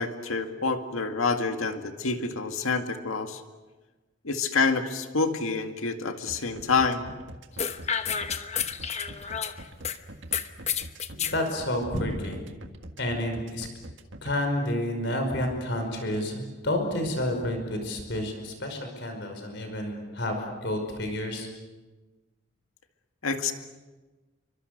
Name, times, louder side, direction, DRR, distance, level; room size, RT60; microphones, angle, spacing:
voice 1, 0.0-3.4 4.2-7.0 23.2-23.5, left 4 dB, 85° left, 6 dB, 2.1 m, -27 dB
sound 1, 6.3-14.3, right 1 dB, 60° right, 1.7 m, -43 dB
sound 2, 7.6-10.0 10.3-11.4, left 7 dB, 30° left, 1.0 m, -30 dB
voice 2, 11.1-12.4 13.0-13.7 14.2-21.5, left 1 dB, 55° left, 5 dB, 5.3 m, -30 dB
29.0 x 24.5 x 6.7 m, 1.2 s
head